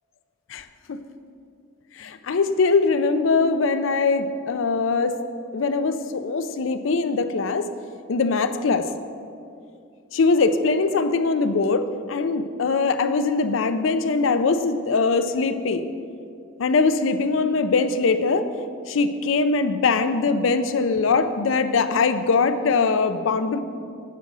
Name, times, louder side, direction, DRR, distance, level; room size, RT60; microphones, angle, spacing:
voice 1, 0.5-1.0 2.0-5.2 5.5-7.7 8.1-8.9 10.1-15.8 16.6-18.5 18.9-23.6, left 4 dB, 80° left, 10 dB, 0.5 m, -22 dB
9.3 x 6.2 x 4.8 m, 2.5 s
head